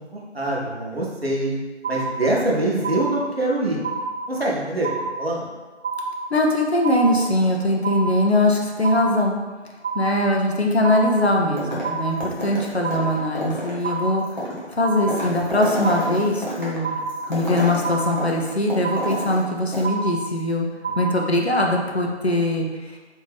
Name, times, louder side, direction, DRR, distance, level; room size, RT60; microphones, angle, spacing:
voice 1, 0.1-1.5 1.9-3.8 4.3-4.9 5.2-5.5 20.9-21.0, right 2 dB, 60° right, -4 dB, 0.9 m, -24 dB
sound 1, 1.8-2.5 2.8-3.5 3.8-4.5 4.8-5.5 5.8-6.5 6.8-7.5 7.8-8.5 8.8-9.5 9.8-10.5 10.8-11.5 11.8-12.5 12.8-13.5 13.8-14.5 14.8-15.5 15.8-16.5 16.8-17.5 17.8-18.5 18.8-19.5 19.8-20.5 20.8-21.5, right 4 dB, 75° right, 0.5 m, -29 dB
voice 2, 6.3-9.4 9.9-14.2 14.7-17.0 17.3-20.7 21.0-22.9, left 1 dB, 65° left, 0 dB, 0.7 m, -21 dB
sound 2, 11.6-12.0 12.2-19.5 19.7-19.8, equal, 40° left, 0.9 m, -30 dB
3.4 x 2.7 x 3.4 m, 1.3 s
figure-of-eight pair, 180°, 35 cm